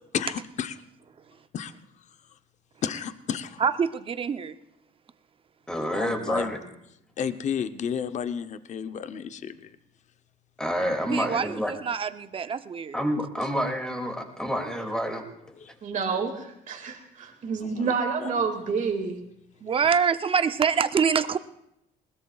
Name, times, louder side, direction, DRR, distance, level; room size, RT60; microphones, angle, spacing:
voice 1, 0.1-0.8 1.5-1.7 2.8-3.6 5.9-6.5 7.2-9.8 14.5-14.6 15.6-15.7 17.6-17.9 18.2-18.3, left 8 dB, 45° left, 11 dB, 0.8 m, -32 dB
voice 2, 3.6-4.6 11.1-13.0 19.6-21.4, right 6 dB, 30° right, 11 dB, 0.7 m, -25 dB
voice 3, 5.7-6.6 10.6-11.7 12.9-15.2, equal, 5° left, 3 dB, 2.5 m, -28 dB
voice 4, 15.8-19.2, right 5 dB, 50° right, 3 dB, 2.1 m, -29 dB
21.0 x 20.0 x 2.4 m, 0.79 s
cardioid pair, 110°, 17 cm